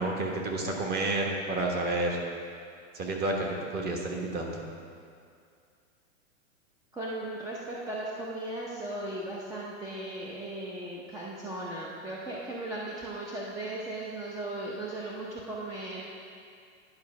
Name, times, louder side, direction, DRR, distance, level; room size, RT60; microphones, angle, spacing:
voice 1, 0.0-2.2 2.9-3.5 3.7-4.6, right 2 dB, 25° right, 0 dB, 1.3 m, -30 dB
voice 2, 6.9-16.0, right 1 dB, 10° right, -5 dB, 0.6 m, -37 dB
10.5 x 4.6 x 6.2 m, 2.3 s
hypercardioid pair, 135°, 39 cm